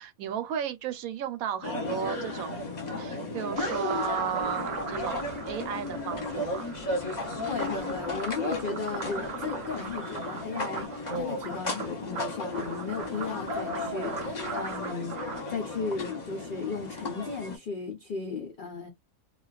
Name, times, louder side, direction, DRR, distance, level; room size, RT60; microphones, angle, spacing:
voice 1, 0.0-6.7, right 8 dB, 75° right, 1.0 m, -34 dB
sound 1, 1.6-17.6, left 2 dB, 35° left, 0.8 m, -34 dB
sound 2, 3.6-15.4, right 5 dB, 55° right, 0.4 m, -40 dB
voice 2, 7.4-15.2 15.5-18.9, left 5 dB, 75° left, 0.4 m, -35 dB
2.4 x 2.3 x 2.3 m
omnidirectional pair, 1.5 m